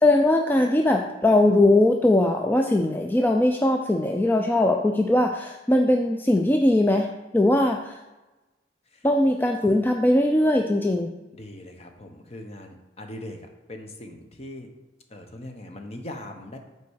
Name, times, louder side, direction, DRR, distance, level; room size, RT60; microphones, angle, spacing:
voice 1, 0.0-8.0 9.0-11.1, left 1 dB, 10° left, 3 dB, 0.3 m, -20 dB
voice 2, 11.3-14.7 15.1-16.6, left 1 dB, 35° left, 4 dB, 0.8 m, -40 dB
5.6 x 4.5 x 6.3 m, 1.1 s
head